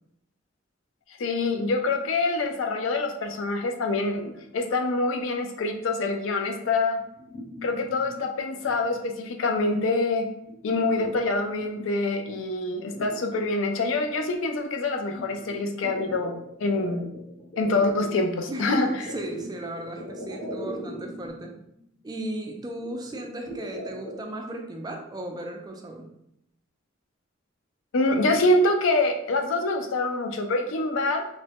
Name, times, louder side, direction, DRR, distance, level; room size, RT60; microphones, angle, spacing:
voice 1, 1.2-7.0 7.6-10.3 10.6-17.1 17.6-18.9 27.9-31.3, left 2 dB, 80° left, 5 dB, 0.4 m, -25 dB
sound 1, 7.0-8.2 8.6-9.0 9.4-9.9 10.2-11.8 12.3-12.4 12.7-14.0 15.1-18.2 19.0-21.5 21.8-21.9 22.1-22.2 22.8-24.2, equal, 35° left, 1.0 m, -40 dB
voice 2, 18.5-21.6 22.0-26.1, right 1 dB, 20° right, 2 dB, 0.3 m, -35 dB
3.1 x 2.1 x 2.8 m, 0.78 s
head